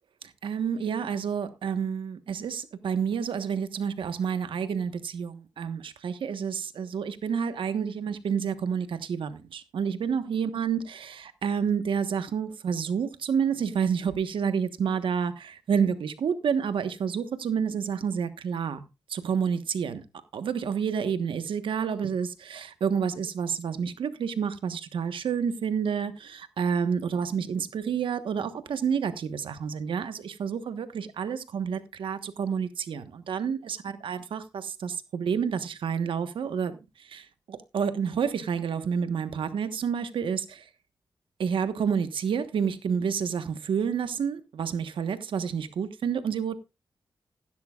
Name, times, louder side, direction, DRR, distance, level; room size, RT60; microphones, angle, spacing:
voice 1, 0.4-18.8 19.1-20.0 20.3-40.7 41.4-46.5, right 7 dB, 90° right, 1.3 m, -29 dB
15.5 x 12.5 x 2.4 m
wide cardioid pair, 110°, 9 cm